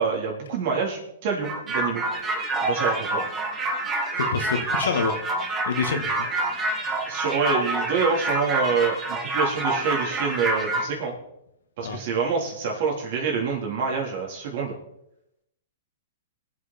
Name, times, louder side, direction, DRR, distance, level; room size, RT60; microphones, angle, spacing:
voice 1, 0.0-2.0 2.6-3.2 4.8-4.9 7.1-11.2 11.8-14.7, right 5 dB, 55° right, 0 dB, 3.9 m, -26 dB
sound 1, 1.4-10.9, right 2 dB, 20° right, 2.0 m, -27 dB
voice 2, 4.2-5.2 5.7-6.3 11.8-12.0, left 5 dB, 80° left, 7 dB, 1.9 m, -27 dB
20.5 x 8.3 x 4.5 m, 0.81 s
hypercardioid pair, 130°, 0 cm